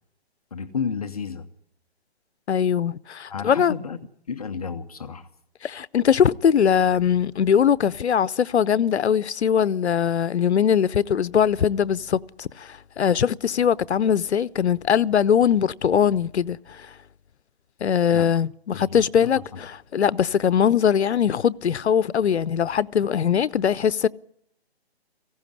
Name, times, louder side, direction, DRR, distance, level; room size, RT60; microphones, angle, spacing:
voice 1, 0.5-1.5 3.3-4.0 4.3-5.3 18.1-18.3 18.7-19.4, left 6 dB, 35° left, 0.8 m, -32 dB
voice 2, 2.5-3.7 5.6-16.8 17.8-24.1, left 8 dB, 85° left, 0.7 m, -21 dB
18.0 x 16.0 x 9.9 m
hypercardioid pair, 165°, 32 cm